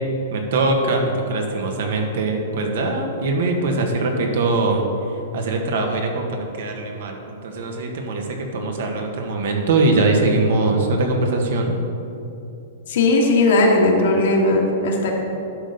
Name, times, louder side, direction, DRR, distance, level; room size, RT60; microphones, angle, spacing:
voice 1, 0.3-4.8 5.3-11.7, right 2 dB, 70° right, 2 dB, 1.5 m, -22 dB
voice 2, 12.9-15.1, left 2 dB, 70° left, -1 dB, 1.9 m, -17 dB
11.0 x 4.0 x 6.7 m, 2.7 s
hypercardioid pair, 140°, 0 cm